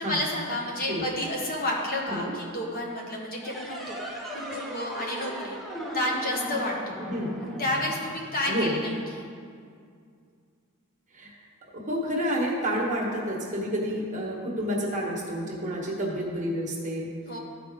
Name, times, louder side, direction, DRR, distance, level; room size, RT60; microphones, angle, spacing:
voice 1, 0.0-5.6 5.9-7.0 7.6-9.2 17.3-17.4, left 1 dB, 40° left, -1 dB, 1.2 m, -31 dB
sound 1, 3.4-8.7, equal, ahead, 0.8 m, -37 dB
voice 2, 8.5-8.8 11.1-11.3 11.7-17.1, equal, 35° right, -3 dB, 1.3 m, -29 dB
13.0 x 4.8 x 3.6 m, 2.2 s
head